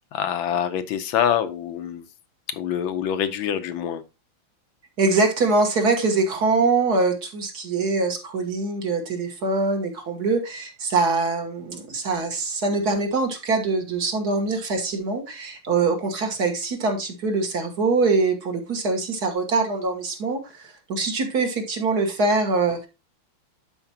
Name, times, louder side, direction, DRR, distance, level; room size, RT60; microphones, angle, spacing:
voice 1, 0.1-2.1 2.5-4.0, left 9 dB, 80° left, 1.4 m, -25 dB
voice 2, 5.0-22.9, right 3 dB, 50° right, 1.8 m, -23 dB
11.5 x 4.5 x 2.8 m
omnidirectional pair, 2.3 m